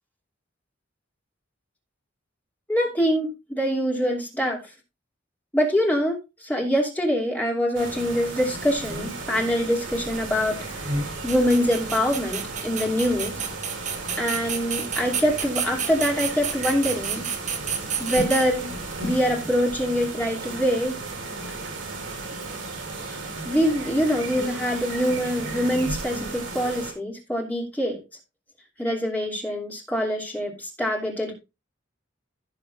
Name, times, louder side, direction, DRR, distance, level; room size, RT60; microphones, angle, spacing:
voice 1, 2.7-4.6 5.5-10.6 11.2-13.4 14.2-17.3 18.0-18.7 19.0-21.0 23.0-23.2 23.4-28.0 28.8-31.3, equal, 10° left, -2 dB, 2.8 m, -24 dB
sound 1, 7.7-26.9, right 2 dB, 70° right, 3.3 m, -34 dB
sound 2, 9.8-19.0, right 7 dB, 40° right, 1.5 m, -32 dB
16.0 x 6.8 x 2.5 m, 0.26 s
head